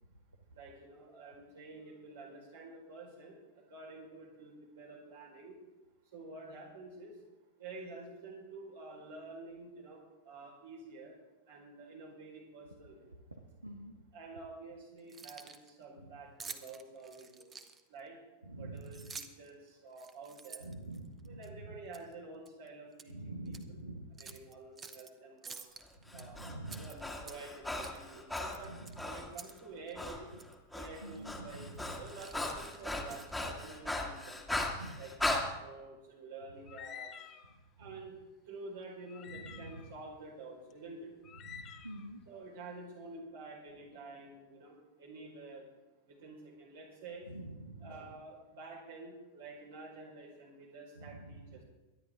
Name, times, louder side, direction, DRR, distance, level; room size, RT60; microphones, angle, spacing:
voice 1, 0.5-3.4 3.7-5.6 6.1-7.2 7.6-11.2 11.5-13.1 14.1-17.5 17.9-18.2 18.6-20.6 21.2-23.8 24.2-25.6 26.1-30.3 30.7-34.4 34.9-37.1 37.8-38.2 38.5-41.1 42.3-45.7 46.1-47.3 47.8-51.6, right 3 dB, 60° right, -1 dB, 4.6 m, -49 dB
voice 2, 13.3-14.0 16.0-16.1 18.5-19.1 20.6-21.8 23.1-24.4 26.0-26.9 28.6-29.0 31.0-32.1 34.7-35.0 37.8-37.9 39.3-39.9 41.4-42.3 47.3-48.0 51.0-51.6, right 2 dB, 80° right, 4 dB, 1.1 m, -47 dB
Keys jangling, 15.0-15.7 16.4-18.0 18.8-19.5 19.9-21.5 21.9-22.1 22.5-23.1 23.5-23.6 24.2-25.1 25.4-26.2 26.7-27.6 27.8-28.0 28.3-29.6 29.9-30.0 30.4-30.5 31.1-31.4 31.7-33.5, right 5 dB, 20° right, 0.9 m, -50 dB
Breathing, 26.1-29.3 30.0-30.2 30.5-35.4, left 2 dB, ahead, 1.8 m, -38 dB
sound 1, 36.7-37.5 38.0-38.1 39.1-39.9 40.7-40.8 41.1-42.1, left 8 dB, 30° left, 1.0 m, -49 dB
23.5 x 10.5 x 3.7 m, 1.1 s
figure-of-eight pair, 90°, 0 cm